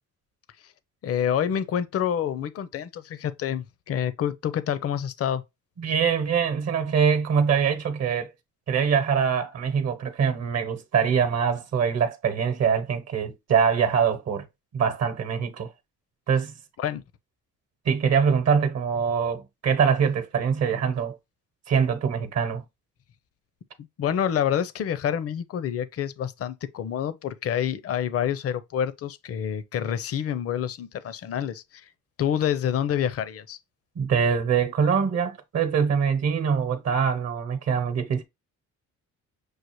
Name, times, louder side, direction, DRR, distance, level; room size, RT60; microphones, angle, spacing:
voice 1, 1.0-5.4 16.8-17.0 24.0-31.9 32.2-33.6, left 9 dB, 50° left, 0.6 m, -27 dB
voice 2, 5.8-8.3 8.7-14.4 14.7-15.7 16.3-16.5 17.8-21.2 21.7-22.6 34.0-38.2, right 6 dB, 60° right, 0.9 m, -23 dB
6.4 x 2.4 x 3.0 m
cardioid pair, 90°, 30 cm